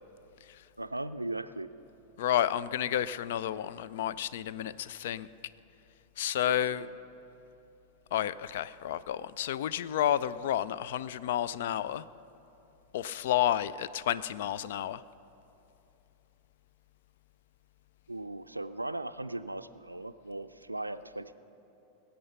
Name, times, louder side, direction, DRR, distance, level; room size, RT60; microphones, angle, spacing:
voice 1, 0.8-1.7 6.4-6.9 18.1-21.3, right 2 dB, 85° right, 12 dB, 0.4 m, -38 dB
voice 2, 2.2-5.3 6.2-6.9 8.1-12.0 12.9-15.0, left 11 dB, 55° left, 17 dB, 0.3 m, -31 dB
20.0 x 8.5 x 5.7 m, 2.9 s
figure-of-eight pair, 90°, 0 cm